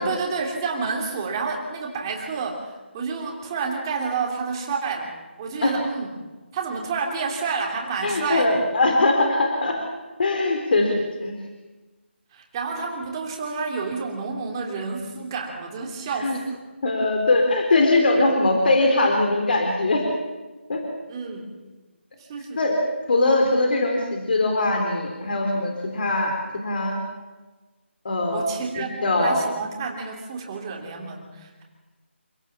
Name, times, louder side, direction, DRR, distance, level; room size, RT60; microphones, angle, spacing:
voice 1, 0.0-5.1 5.4-6.1 6.5-8.6 12.3-16.6 21.1-21.6 22.2-22.6 28.3-28.9 29.2-31.6, right 4 dB, 20° right, 1 dB, 3.1 m, -29 dB
voice 2, 8.0-9.8 10.2-10.9 11.2-11.3 16.2-16.4 16.8-20.0 20.7-20.8 22.6-22.7 23.1-27.0 28.0-29.4, left 2 dB, 50° left, 2 dB, 3.9 m, -21 dB
27.0 x 17.0 x 7.5 m, 1.2 s
figure-of-eight pair, 165°, 7 cm